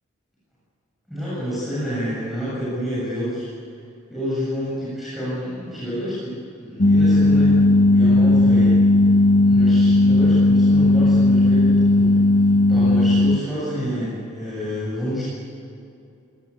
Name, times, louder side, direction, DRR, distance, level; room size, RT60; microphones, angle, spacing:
voice 1, 1.1-3.5 4.1-8.8 9.4-12.2 12.7-15.2, equal, ahead, -9 dB, 7.4 m, -28 dB
Fluro on warmup, 6.8-13.4, left 2 dB, 40° left, 0.8 m, -15 dB
27.0 x 19.0 x 8.5 m, 2.6 s
head